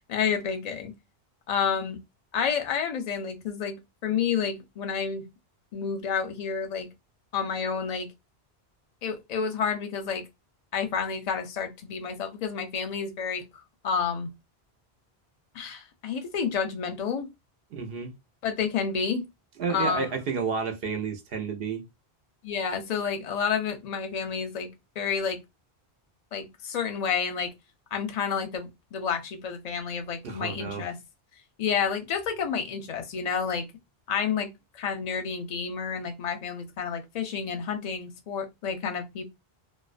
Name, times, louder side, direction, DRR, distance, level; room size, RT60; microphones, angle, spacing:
voice 1, 0.1-0.9 1.5-2.0 2.3-5.2 5.7-6.9 7.3-8.1 9.0-10.2 10.7-13.4 13.8-14.3 15.5-17.3 18.4-19.3 19.7-20.1 22.4-24.7 25.0-25.4 26.3-27.5 27.9-31.0 31.6-33.6 34.1-39.2, left 6 dB, 50° left, 0.6 m, -30 dB
voice 2, 17.7-18.1 19.6-21.8 30.2-30.9, right 5 dB, 70° right, 0.8 m, -31 dB
2.4 x 2.1 x 2.4 m
omnidirectional pair, 1.1 m